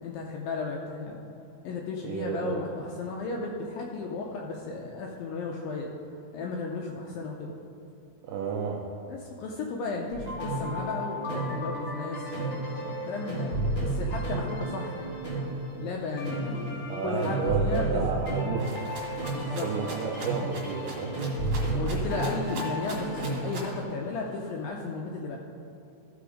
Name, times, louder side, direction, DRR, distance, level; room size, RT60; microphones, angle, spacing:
voice 1, 0.0-1.2 1.6-5.9 6.3-7.5 9.1-12.3 12.9-15.1 15.7-18.2 19.3-20.0 21.7-25.4, left 4 dB, 80° left, 0 dB, 2.1 m, -34 dB
voice 2, 2.0-2.7 8.2-8.8 16.9-18.8 19.6-21.1, right 6 dB, 80° right, -2 dB, 1.9 m, -31 dB
sound 1, 10.1-24.1, right 1 dB, 25° left, 1.3 m, -32 dB
Rattle (instrument), 18.6-23.8, right 3 dB, 50° right, 2.1 m, -42 dB
14.5 x 5.1 x 5.0 m, 3.0 s
omnidirectional pair, 4.8 m